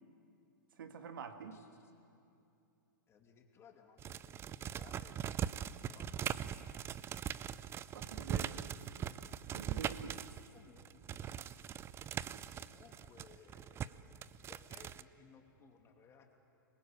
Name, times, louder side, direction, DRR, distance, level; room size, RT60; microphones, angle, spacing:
voice 1, 0.8-1.6 7.9-8.6 9.5-10.2 12.3-12.4, right 6 dB, 75° right, 8 dB, 1.8 m, -47 dB
voice 2, 1.5-1.9 3.1-6.9 10.5-11.7 12.5-16.4, left 6 dB, 25° left, 3 dB, 2.7 m, -62 dB
sound 1, 4.0-10.5 10.8-15.0, right 9 dB, 20° right, 0.5 m, -41 dB
25.5 x 20.5 x 8.6 m, 2.7 s
hypercardioid pair, 125°, 11 cm